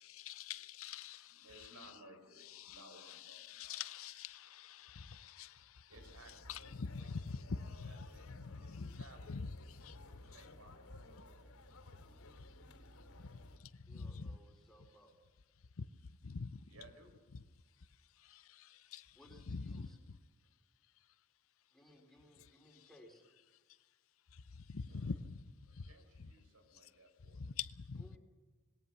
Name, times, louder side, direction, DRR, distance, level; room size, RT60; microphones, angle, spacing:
voice 1, 0.0-1.5 2.6-2.8 3.1-5.9 6.5-7.9 8.4-9.0 9.3-9.5 9.8-10.0 13.2-14.4 15.8-15.9 16.2-16.6 18.2-19.1 19.5-19.9 24.7-25.3 25.8-25.9 27.4-28.0, left 5 dB, 65° left, 0.6 m, -45 dB
voice 2, 1.3-3.8 5.9-7.6 7.8-8.3 8.6-9.4 10.0-11.5 16.7-17.1 24.9-25.2 25.7-27.4, right 2 dB, 85° right, 5.0 m, -61 dB
sound 1, 5.9-13.6, left 1 dB, 85° left, 3.2 m, -57 dB
voice 3, 13.9-15.1 19.2-20.0 21.7-23.2 27.9-28.2, left 1 dB, ahead, 4.2 m, -61 dB
21.5 x 18.0 x 6.9 m
head